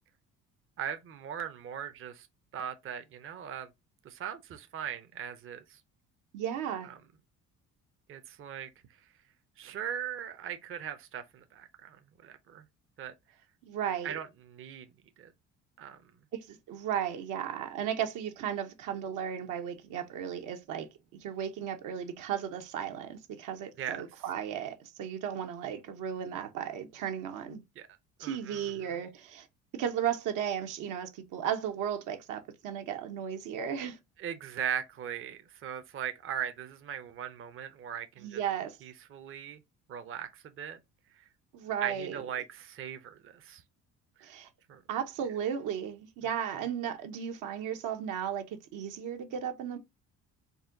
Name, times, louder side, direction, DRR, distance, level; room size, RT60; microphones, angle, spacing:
voice 1, 0.8-2.3 2.5-3.7 4.0-5.8 6.8-6.9 8.1-8.7 9.6-12.0 12.2-12.6 13.0-13.1 14.0-14.9 15.2-15.3 15.8-16.0 23.8-24.0 27.8-27.9 28.2-28.9 34.2-38.4 38.8-39.6 39.9-40.8 41.8-43.6 44.2-44.3 44.7-44.8, right 9 dB, 40° right, 0.6 m, -39 dB
voice 2, 6.3-6.9 13.6-14.2 16.3-27.6 28.2-29.5 29.7-34.0 38.2-38.8 41.5-42.2 44.2-44.5 44.9-49.8, right 9 dB, 70° right, 0.8 m, -35 dB
4.1 x 2.2 x 3.7 m
supercardioid pair, 90°, 32 cm